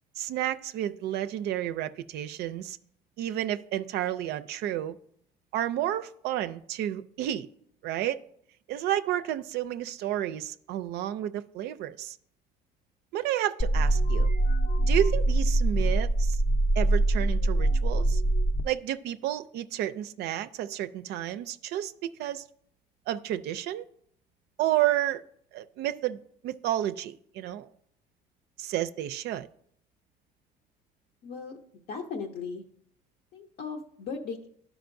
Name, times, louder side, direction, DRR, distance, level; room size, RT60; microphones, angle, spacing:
voice 1, 0.2-2.8 3.2-5.0 5.5-7.5 7.8-8.2 8.7-12.2 13.1-14.3 14.8-16.4 16.8-18.2 18.6-22.4 23.1-23.8 24.6-25.2 25.5-27.7 28.6-29.5, right 12 dB, 75° right, 11 dB, 0.4 m, -31 dB
sound 1, 13.6-18.6, right 2 dB, 35° left, 0.5 m, -24 dB
voice 2, 31.2-31.6 31.9-32.6 33.3-34.5, left 5 dB, 65° left, 2 dB, 0.8 m, -37 dB
11.5 x 4.9 x 2.6 m, 0.67 s
cardioid pair, 110°, 17 cm